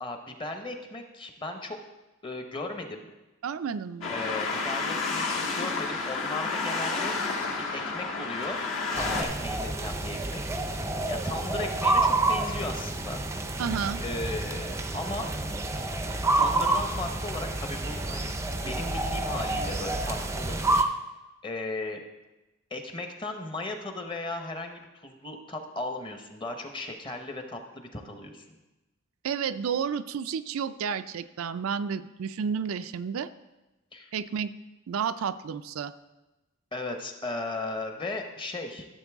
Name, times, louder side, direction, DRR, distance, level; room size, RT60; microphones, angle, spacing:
voice 1, 0.0-1.8 2.2-3.1 4.1-7.2 7.6-8.6 8.9-10.5 11.1-13.2 14.0-15.3 16.3-18.3 18.6-20.9 21.4-22.0 22.7-28.5 33.9-34.1 36.7-38.9, left 2 dB, 25° left, 5 dB, 0.9 m, -36 dB
voice 2, 3.4-4.1 13.6-14.0 29.2-33.3 34.1-34.5 34.9-35.9, right 7 dB, 80° right, 11 dB, 0.4 m, -31 dB
sound 1, 4.0-9.2, left 4 dB, 65° left, 1.5 m, -30 dB
sound 2, 8.9-20.8, right 2 dB, 15° right, 0.5 m, -29 dB
13.0 x 7.4 x 3.6 m, 1.1 s
head